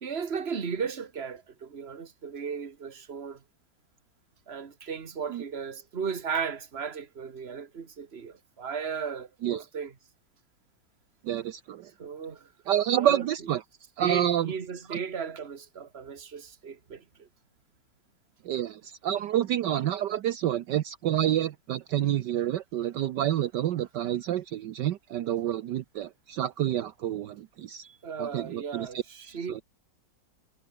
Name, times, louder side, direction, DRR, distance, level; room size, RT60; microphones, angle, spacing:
voice 1, 0.0-3.4 4.5-10.0 12.0-12.5 12.9-13.3 14.0-17.3 27.8-29.6, right 6 dB, 35° right, 1.8 m, -36 dB
voice 2, 11.3-11.8 12.7-13.6 14.0-14.5 14.9-15.0 18.5-27.8 28.2-29.0 29.5-29.6, right 11 dB, 70° right, 1.4 m, -28 dB
omnidirectional pair, 2.0 m